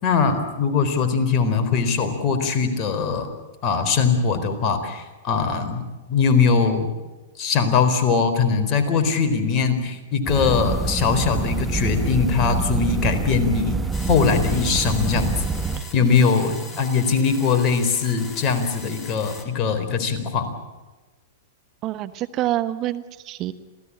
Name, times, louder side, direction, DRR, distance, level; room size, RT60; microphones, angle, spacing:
voice 1, 0.0-3.3 3.6-5.8 6.1-6.9 7.4-13.8 14.0-15.4 15.9-20.5, left 5 dB, 40° left, 7 dB, 4.2 m, -21 dB
sound 1, 10.2-15.8, right 4 dB, 15° right, 1.3 m, -26 dB
sound 2, 13.9-19.5, left 3 dB, 20° left, 4.3 m, -40 dB
voice 2, 21.8-23.5, right 14 dB, 40° right, 13 dB, 1.1 m, -27 dB
27.0 x 17.0 x 8.7 m, 1.2 s
hypercardioid pair, 110°, 0 cm